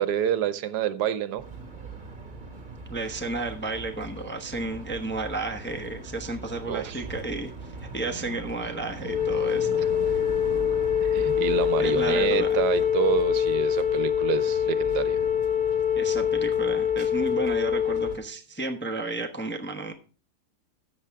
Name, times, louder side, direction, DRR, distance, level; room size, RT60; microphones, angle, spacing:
voice 1, 0.0-1.4 6.7-7.0 9.8-9.9 11.0-15.2, right 10 dB, 75° right, 14 dB, 1.3 m, -28 dB
sound 1, 1.4-18.2, right 3 dB, 30° right, 1.7 m, -41 dB
voice 2, 2.9-10.2 11.8-12.5 16.0-19.9, right 2 dB, 10° left, 3 dB, 0.6 m, -32 dB
Wind instrument woodwind instrument, 9.0-18.2, left 9 dB, 40° left, 1.1 m, -24 dB
13.0 x 7.5 x 3.5 m, 0.38 s
omnidirectional pair, 1.8 m